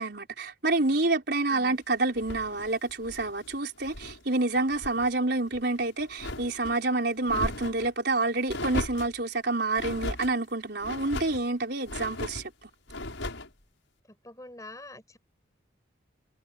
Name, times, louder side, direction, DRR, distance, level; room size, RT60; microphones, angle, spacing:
voice 1, 0.0-12.7, right 2 dB, 55° right, 4.8 m, -28 dB
sound 1, 2.1-4.2 4.5-5.1 5.5-6.8 7.2-7.9 8.5-9.2 9.8-10.3 10.8-11.4 11.8-12.5 12.9-13.5, left 2 dB, 75° left, 6.5 m, -37 dB
voice 2, 7.3-7.6 14.1-15.2, left 1 dB, 15° left, 6.6 m, -46 dB
head